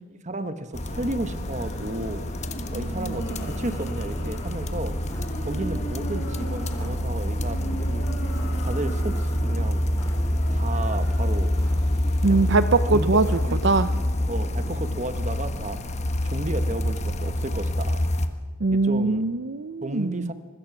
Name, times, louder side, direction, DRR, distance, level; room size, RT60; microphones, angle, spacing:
voice 1, 0.2-2.2 2.7-5.0 5.4-8.1 8.6-9.9 10.5-11.5 12.3-12.5 12.9-13.6 14.3-15.8 16.2-18.0 18.7-19.2 19.8-20.3, right 1 dB, 35° right, 10 dB, 1.3 m, -33 dB
sound 1, 0.7-18.3, left 1 dB, 35° left, 1.3 m, -27 dB
sound 2, 1.2-12.5, right 1 dB, 50° left, 7.4 m, -40 dB
sound 3, 3.8-14.9, equal, 15° left, 3.5 m, -44 dB
voice 2, 12.2-13.9 18.6-20.3, right 3 dB, 55° right, 12 dB, 0.6 m, -22 dB
24.5 x 21.0 x 6.1 m, 1.5 s
head